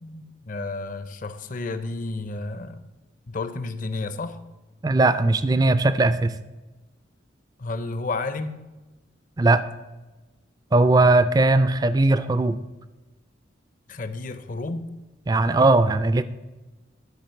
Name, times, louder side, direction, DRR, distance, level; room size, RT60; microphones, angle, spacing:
voice 1, 0.0-2.9 3.3-4.4 7.6-8.6 13.9-14.9, left 3 dB, 45° left, 11 dB, 0.6 m, -31 dB
voice 2, 4.8-6.3 9.4-9.6 10.7-12.6 15.3-16.2, right 2 dB, 20° right, 14 dB, 0.3 m, -19 dB
10.5 x 4.6 x 6.9 m, 1.1 s
head